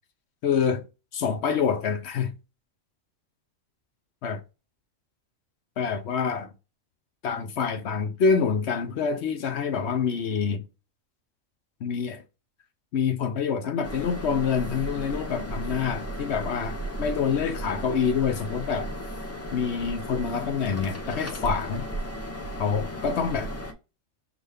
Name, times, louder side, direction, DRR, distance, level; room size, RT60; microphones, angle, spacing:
voice 1, 0.4-0.8 1.1-2.3 4.2-4.4 5.8-6.5 7.2-10.6 11.8-12.2 12.9-18.9 19.5-21.9 22.6-23.5, left 6 dB, 60° left, 0.9 m, -26 dB
sound 1, 13.8-23.7, right 1 dB, 20° left, 0.5 m, -35 dB
6.0 x 2.5 x 3.3 m
omnidirectional pair, 1.4 m